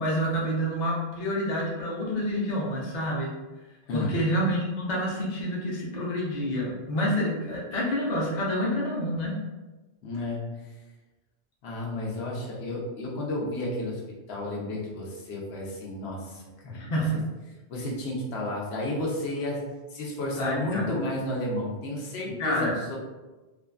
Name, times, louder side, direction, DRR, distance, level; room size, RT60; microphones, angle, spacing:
voice 1, 0.0-3.3 3.9-9.3 16.6-17.2 20.4-20.9 22.4-22.7, equal, 50° left, -5 dB, 0.7 m, -28 dB
voice 2, 10.0-10.4 10.6-10.7 11.6-14.0 14.3-16.9 17.7-23.0, left 1 dB, 85° left, -3 dB, 0.9 m, -32 dB
2.4 x 2.3 x 2.2 m, 1.1 s
omnidirectional pair, 1.1 m